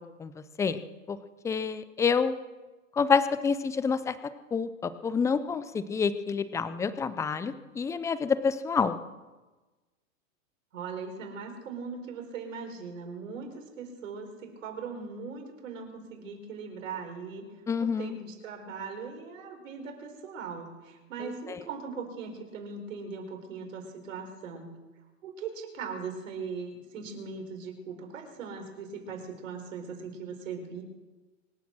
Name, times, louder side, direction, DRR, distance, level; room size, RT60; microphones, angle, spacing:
voice 1, 1.4-2.4 2.9-4.2 4.5-9.0 17.7-18.2 21.2-21.6, left 5 dB, 10° left, 13 dB, 0.5 m, -28 dB
voice 2, 10.7-17.5 17.8-24.7 25.2-30.8, right 5 dB, 75° right, 4 dB, 4.6 m, -40 dB
25.0 x 8.4 x 6.3 m, 1.2 s
hypercardioid pair, 130°, 40 cm